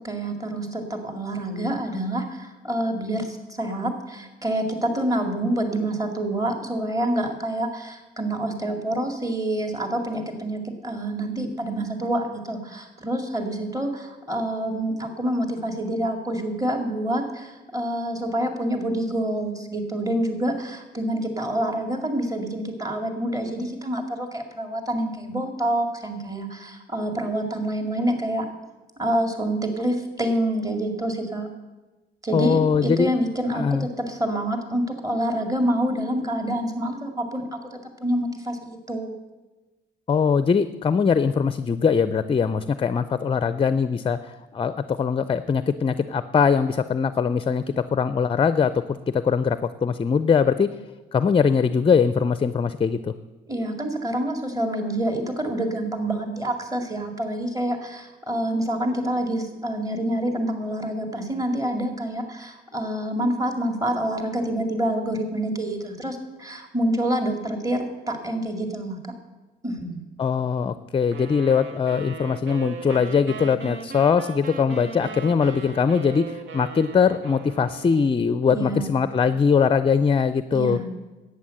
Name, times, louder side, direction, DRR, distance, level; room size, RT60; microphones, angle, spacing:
voice 1, 0.0-28.5 29.0-31.5 32.2-37.4 37.7-39.1 53.5-69.0 69.6-70.1 78.4-78.9 80.5-80.9, right 1 dB, 15° right, 5 dB, 2.2 m, -27 dB
voice 2, 32.3-33.1 33.5-33.9 40.1-44.2 44.5-50.7 51.1-53.1 70.2-80.8, left 6 dB, 25° left, 13 dB, 0.5 m, -21 dB
sound 1, 71.1-78.3, right 5 dB, 75° right, 1.2 m, -38 dB
11.0 x 8.6 x 7.7 m, 1.2 s
cardioid pair, 90°, 20 cm